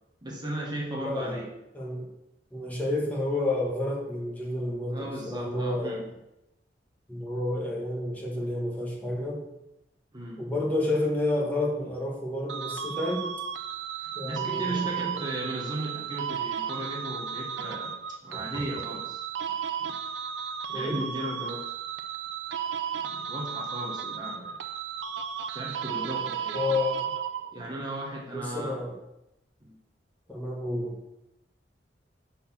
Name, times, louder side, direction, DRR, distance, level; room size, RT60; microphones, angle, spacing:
voice 1, 0.2-1.5 4.9-6.1 10.1-10.5 14.0-19.2 19.8-20.0 20.7-21.7 22.9-24.6 25.5-26.7 27.5-28.9 29.6-29.8, right 1 dB, 25° right, -3 dB, 1.1 m, -36 dB
voice 2, 1.0-1.4 1.7-2.1 2.5-6.1 7.1-9.5 10.4-13.3 14.1-15.1 18.3-18.6 20.7-21.0 26.5-27.0 28.3-29.0 30.3-31.0, left 2 dB, 10° left, -3 dB, 1.3 m, -30 dB
sound 1, 12.5-27.7, right 8 dB, 80° right, 0.5 m, -34 dB
6.2 x 4.2 x 5.8 m, 0.87 s
head